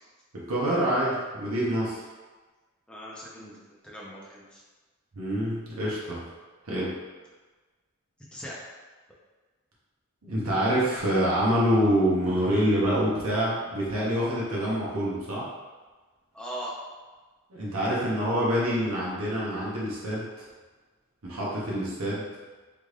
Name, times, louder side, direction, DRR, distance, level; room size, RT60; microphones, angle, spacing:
voice 1, 0.5-2.0 5.1-6.2 6.6-6.9 10.2-15.4 17.5-20.5 21.2-22.3, equal, 90° right, -6 dB, 1.0 m, -26 dB
voice 2, 2.9-4.6 8.3-8.6 16.3-16.7, equal, 5° left, -5 dB, 0.6 m, -40 dB
3.6 x 2.5 x 3.2 m, 1.3 s
head